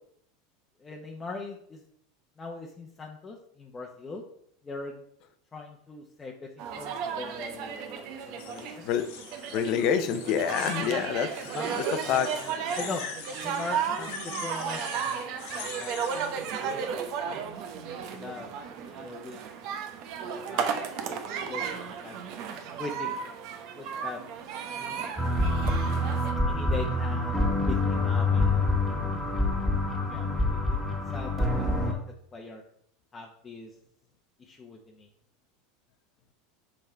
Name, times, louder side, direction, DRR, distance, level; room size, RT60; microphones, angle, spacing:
voice 1, 0.8-1.8 2.4-4.2 4.6-5.0 5.5-8.9 10.8-11.1 11.5-13.0 13.4-15.9 16.6-17.4 17.9-18.5 18.9-19.4 20.5-20.7 21.1-22.2 22.8-23.1 23.8-24.2 24.8-25.2 26.5-28.7 30.1-30.8 31.1-32.0 32.3-32.6 33.1-33.7 34.4-35.1, left 3 dB, 20° left, 0 dB, 0.9 m, -41 dB
sound 1, 6.6-26.3, right 7 dB, 60° right, 0.9 m, -34 dB
sound 2, 8.4-10.9 11.3-16.4, left 8 dB, 75° left, 1.2 m, -43 dB
voice 2, 9.5-11.3 12.1-12.3, left 8 dB, 55° left, 10 dB, 0.7 m, -26 dB
sound 3, 25.2-31.9, left 2 dB, 5° right, 1.8 m, -26 dB
5.6 x 4.8 x 4.5 m, 0.67 s
supercardioid pair, 115°, 0 cm